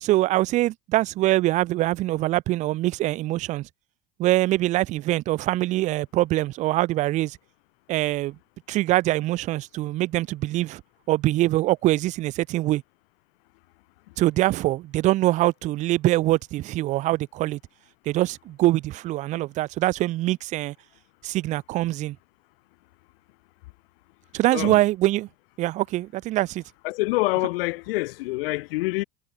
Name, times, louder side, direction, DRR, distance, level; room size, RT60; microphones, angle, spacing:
voice 1, 0.0-3.7 4.2-7.4 7.9-8.4 8.7-10.8 11.1-12.8 14.2-17.6 18.1-20.7 21.2-22.2 24.3-25.3 25.6-26.6, right 17 dB, 25° right, 0.5 m, -23 dB
voice 2, 26.8-29.0, left 22 dB, 70° left, 2.5 m, -26 dB
cardioid pair, 175°, 30 cm